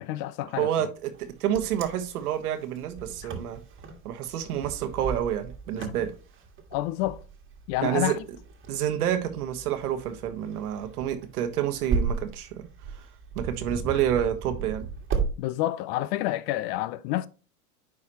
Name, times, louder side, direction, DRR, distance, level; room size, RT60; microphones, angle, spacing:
voice 1, 0.0-0.9 3.2-3.3 6.7-7.2 7.7-8.2 15.4-17.3, left 15 dB, 45° left, 0.5 m, -29 dB
voice 2, 0.6-3.6 4.0-6.1 7.8-8.2 8.7-12.7 13.3-14.9, right 10 dB, 75° right, 1.5 m, -28 dB
Wind, 1.1-15.3, right 5 dB, 25° right, 1.6 m, -35 dB
9.4 x 4.8 x 2.9 m
hypercardioid pair, 115°, 45 cm